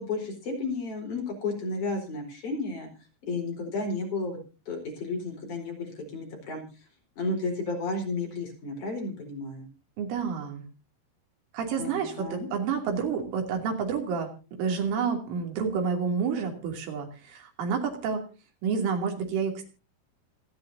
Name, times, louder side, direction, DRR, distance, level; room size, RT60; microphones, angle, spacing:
voice 1, 0.0-2.9 3.2-4.4 4.7-6.6 7.2-9.7 11.8-12.5, left 3 dB, 45° left, 1 dB, 5.4 m, -32 dB
voice 2, 10.0-10.6 11.5-14.3 14.6-18.2 18.6-19.6, right 6 dB, 85° right, 3 dB, 5.3 m, -29 dB
26.0 x 9.8 x 2.7 m, 0.33 s
omnidirectional pair, 5.4 m